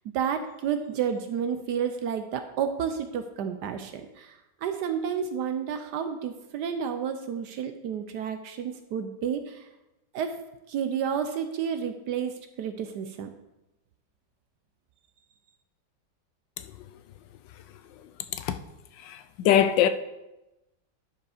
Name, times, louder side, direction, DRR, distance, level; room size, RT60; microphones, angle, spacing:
voice 1, 0.1-9.7 10.1-10.4 10.7-13.3, right 7 dB, 70° right, 1.1 m, -31 dB
voice 2, 19.0-19.9, left 10 dB, 75° left, 1.2 m, -22 dB
10.5 x 5.0 x 4.9 m
omnidirectional pair, 2.1 m